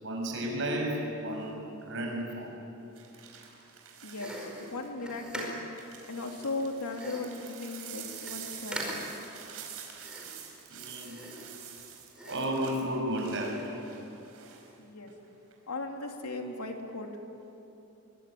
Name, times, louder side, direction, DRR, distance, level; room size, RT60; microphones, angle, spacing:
voice 1, 0.0-1.6 1.9-2.7 10.7-11.2 12.3-13.7, right 1 dB, 55° right, 1 dB, 6.9 m, -33 dB
sound 1, 1.3-1.6 3.0-4.9 5.4-14.7 15.1-15.5, right 8 dB, 70° right, 5.2 m, -47 dB
voice 2, 4.0-5.6 6.1-9.1 14.8-15.1 15.7-17.1, left 2 dB, 90° left, 2 dB, 3.1 m, -37 dB
sound 2, 4.1-5.8 6.9-7.4 7.8-7.9 8.1-8.4 8.7-9.2 10.0-10.5 11.0-11.8 12.1-12.6, right 1 dB, 5° right, 4.8 m, -41 dB
24.5 x 23.5 x 9.3 m, 2.9 s
head